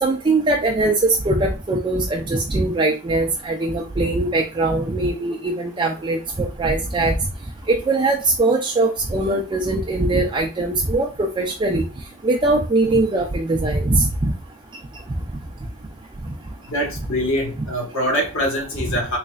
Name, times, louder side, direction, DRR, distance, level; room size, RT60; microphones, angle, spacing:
voice 1, 0.0-7.2 7.7-11.9 12.2-14.3, right 2 dB, 25° right, 0 dB, 0.4 m, -21 dB
voice 2, 16.6-19.2, equal, 65° left, 0 dB, 1.5 m, -24 dB
4.0 x 3.1 x 2.3 m, 0.33 s
head